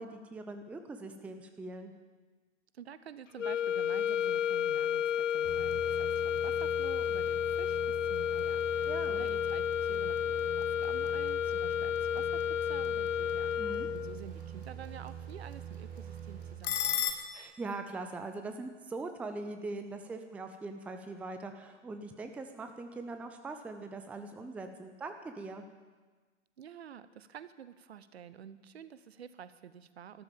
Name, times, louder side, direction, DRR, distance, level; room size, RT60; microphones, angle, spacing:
voice 1, 0.0-1.9 8.9-9.3 13.6-13.9 17.3-25.6, right 3 dB, 5° right, 7 dB, 0.6 m, -42 dB
voice 2, 2.7-17.0 26.6-30.2, right 8 dB, 60° right, 14 dB, 0.9 m, -49 dB
sound 1, 3.4-14.3, left 9 dB, 85° left, 0.5 m, -31 dB
sound 2, 5.3-17.1, left 10 dB, 45° left, 1.8 m, -43 dB
sound 3, 5.4-17.2, right 8 dB, 25° right, 2.4 m, -44 dB
13.0 x 13.0 x 7.3 m, 1.3 s
figure-of-eight pair, 110°, 36 cm